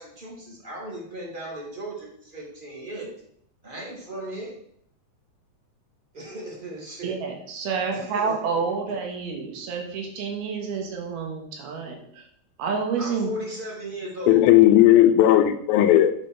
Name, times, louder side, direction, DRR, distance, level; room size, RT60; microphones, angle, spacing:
voice 1, 0.0-3.1 3.6-4.5 6.1-7.2 7.9-8.5 13.0-14.5, right 1 dB, 20° right, -2 dB, 1.6 m, -36 dB
voice 2, 7.0-12.2 12.6-13.3, right 5 dB, 90° right, 2 dB, 3.6 m, -29 dB
voice 3, 14.3-16.3, left 13 dB, 80° left, 9 dB, 2.4 m, -16 dB
9.3 x 5.5 x 5.9 m, 0.69 s
omnidirectional pair, 4.3 m